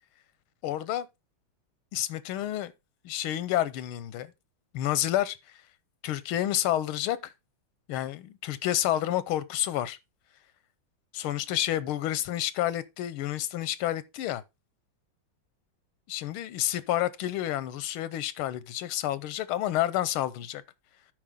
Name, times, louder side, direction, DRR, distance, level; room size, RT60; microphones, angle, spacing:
voice 1, 0.6-1.1 1.9-2.7 3.0-4.3 4.7-5.4 6.0-7.3 7.9-10.0 11.1-14.4 16.1-20.6, left 13 dB, 90° left, 1.6 m, -29 dB
12.5 x 4.9 x 3.6 m
omnidirectional pair, 2.2 m